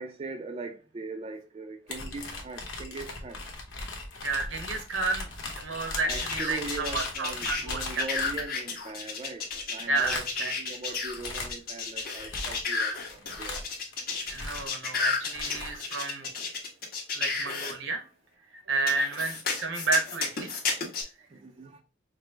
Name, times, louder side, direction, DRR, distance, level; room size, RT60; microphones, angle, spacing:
voice 1, 0.0-3.4 6.0-13.6 21.3-21.8, right 3 dB, 30° right, 0.4 m, -40 dB
sound 1, 1.9-8.8 9.5-9.6 10.0-10.5 10.9-11.6 12.0-14.8 15.2-15.7, left 3 dB, 90° left, 1.0 m, -39 dB
voice 2, 4.2-8.1 9.9-10.5 14.3-16.3 17.1-18.1 18.7-20.5, right 3 dB, 80° right, 0.9 m, -31 dB
sound 2, 6.1-17.7 18.9-21.0, left 4 dB, 50° left, 1.2 m, -32 dB
5.0 x 2.0 x 3.3 m
head